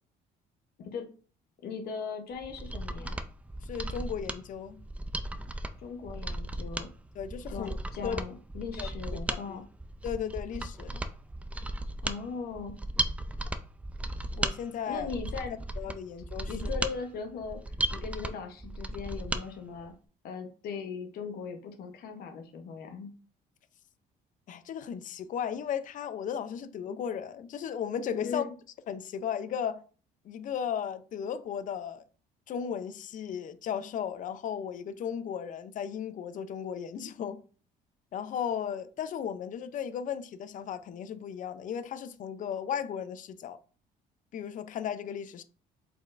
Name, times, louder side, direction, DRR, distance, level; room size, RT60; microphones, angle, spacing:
voice 1, 1.6-3.2 5.8-6.9 7.5-9.6 12.0-12.7 14.9-15.5 16.5-19.9 20.2-23.1 28.2-28.5, left 5 dB, 65° left, 0.9 m, -39 dB
Mechanisms, 2.4-19.4 19.8-19.9, right 1 dB, 10° right, 0.3 m, -36 dB
voice 2, 3.6-4.8 7.2-7.8 8.0-8.2 8.8-8.9 9.3-9.6 10.0-11.0 14.3-15.1 15.8-16.5 16.8-16.9 24.5-28.5 28.9-29.8 30.2-32.0 32.5-37.4 38.1-43.6 44.3-45.4, left 8 dB, 50° left, 0.5 m, -35 dB
4.7 x 3.8 x 2.5 m
cardioid pair, 110°, 17 cm